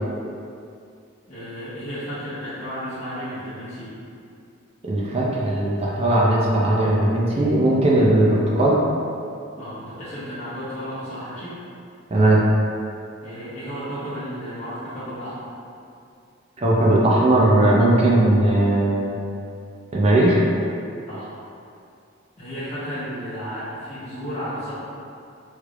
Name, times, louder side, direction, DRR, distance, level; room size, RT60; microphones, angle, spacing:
voice 1, 1.3-4.0 9.6-11.5 13.2-15.4 21.1-21.3 22.4-24.7, equal, 35° left, -13 dB, 0.8 m, -33 dB
voice 2, 4.8-8.8 12.1-12.4 16.6-19.2 19.9-20.4, right 1 dB, 30° right, -5 dB, 0.4 m, -18 dB
3.2 x 3.1 x 2.4 m, 2.5 s
head